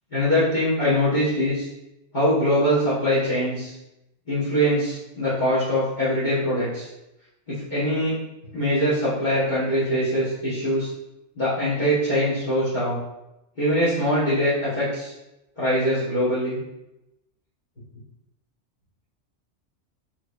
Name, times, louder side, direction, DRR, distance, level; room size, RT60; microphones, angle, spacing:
voice 1, 0.1-1.7 2.1-3.7 4.3-6.9 7.5-8.1 8.5-10.9 11.3-13.0 13.6-15.1 15.6-16.6, equal, 40° left, -12 dB, 1.7 m, -23 dB
3.8 x 3.2 x 3.8 m, 0.90 s
omnidirectional pair, 1.2 m